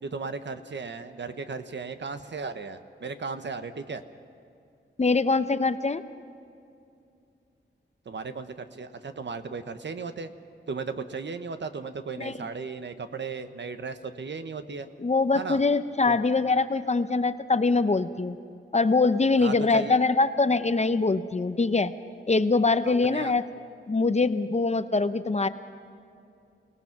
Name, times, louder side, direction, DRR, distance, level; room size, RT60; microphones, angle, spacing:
voice 1, 0.0-4.0 8.0-10.3 10.7-14.9 15.3-15.6 16.1-16.2 19.4-20.0 22.8-23.3, right 4 dB, 65° right, 9 dB, 1.1 m, -36 dB
voice 2, 5.0-6.0 12.2-12.3 15.0-18.4 18.7-21.9 22.3-23.5 23.9-25.5, left 3 dB, 35° left, 11 dB, 0.7 m, -23 dB
29.0 x 18.5 x 6.0 m, 2.6 s
wide cardioid pair, 100°, 20 cm